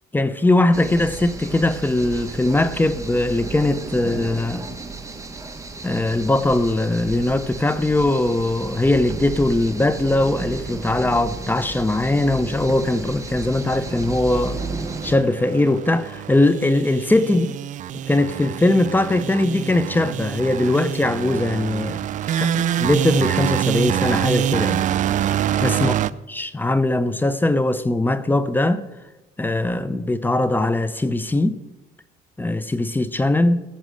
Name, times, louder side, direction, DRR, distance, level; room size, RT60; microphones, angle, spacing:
voice 1, 0.1-4.7 5.8-14.6 15.0-17.5 18.1-22.0 22.3-24.9 25.6-25.9 26.3-28.8 29.4-31.6 32.4-33.6, left 2 dB, 10° left, 0.7 m, -20 dB
sound 1, 0.7-15.2, right 3 dB, 20° right, 1.4 m, -33 dB
sound 2, 13.7-26.1, right 10 dB, 50° right, 0.4 m, -26 dB
16.0 x 6.3 x 6.3 m
cardioid pair, 110°, 17 cm